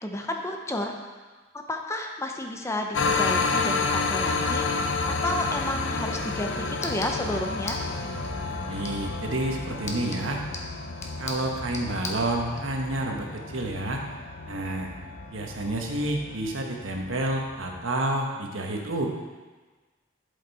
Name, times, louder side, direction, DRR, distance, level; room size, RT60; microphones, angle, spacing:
voice 1, 0.0-1.0 1.5-7.8, left 1 dB, 15° left, 3 dB, 0.6 m, -32 dB
sound 1, 2.9-17.8, left 4 dB, 70° left, 0.6 m, -31 dB
sound 2, 6.0-12.6, left 3 dB, 35° left, 1.0 m, -41 dB
voice 2, 8.6-10.4 11.2-14.0 14.5-14.9 15.3-19.1, right 1 dB, 90° right, 1 dB, 1.2 m, -29 dB
11.5 x 5.2 x 4.1 m, 1.3 s
head